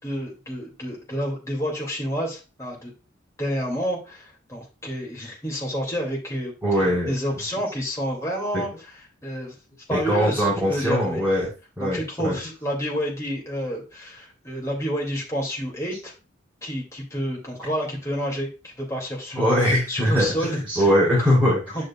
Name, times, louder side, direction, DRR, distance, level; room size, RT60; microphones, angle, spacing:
voice 1, 0.0-2.9 3.4-8.7 9.2-9.6 9.9-11.2 11.8-16.1 16.6-19.5 19.9-20.9 21.7-21.8, equal, 15° left, -3 dB, 2.6 m, -29 dB
voice 2, 6.6-7.1 8.5-8.6 9.9-11.5 11.8-12.4 19.3-21.8, equal, 10° right, -9 dB, 4.8 m, -21 dB
9.9 x 6.6 x 2.4 m, 0.31 s
head